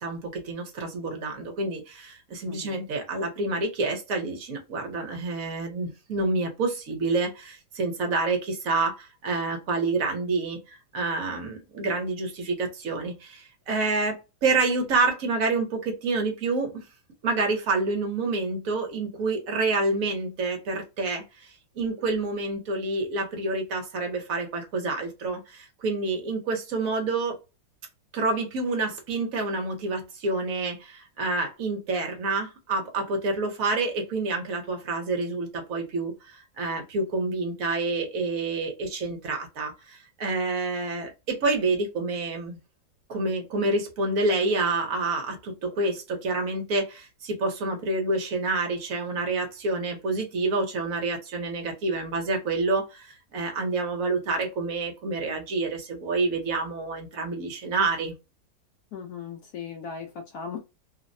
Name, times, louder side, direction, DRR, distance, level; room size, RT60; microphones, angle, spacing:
voice 1, 0.0-16.8 17.2-27.4 28.1-42.6 43.1-58.1, right 3 dB, 60° right, 1.0 m, -28 dB
voice 2, 2.5-2.8 58.9-60.6, left 6 dB, 70° left, 0.9 m, -38 dB
3.2 x 2.0 x 2.5 m
omnidirectional pair, 2.1 m